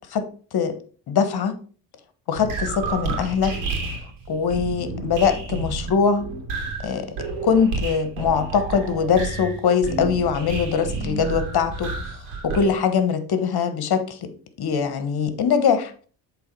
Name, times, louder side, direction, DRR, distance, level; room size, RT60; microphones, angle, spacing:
voice 1, 0.1-0.8 1.1-1.6 2.3-3.6 4.3-6.3 6.8-7.2 7.4-11.9 12.4-14.3 14.6-15.9, left 6 dB, 50° left, 1.3 m, -22 dB
sound 1, 2.3-12.7, right 4 dB, 90° right, 2.2 m, -30 dB
7.9 x 3.8 x 4.6 m
supercardioid pair, 70°, 49 cm